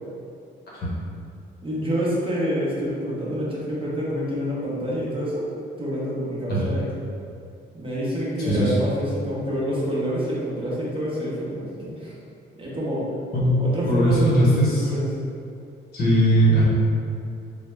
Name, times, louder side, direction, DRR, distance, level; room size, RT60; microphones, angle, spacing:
voice 1, 1.6-5.5 5.8-6.9 7.7-12.1 12.6-13.0 13.6-15.1, equal, 25° right, -7 dB, 0.6 m, -27 dB
voice 2, 13.9-14.9 15.9-16.7, right 1 dB, 55° left, -6 dB, 0.9 m, -19 dB
2.0 x 2.0 x 3.3 m, 2.4 s
cardioid pair, 90°, 20 cm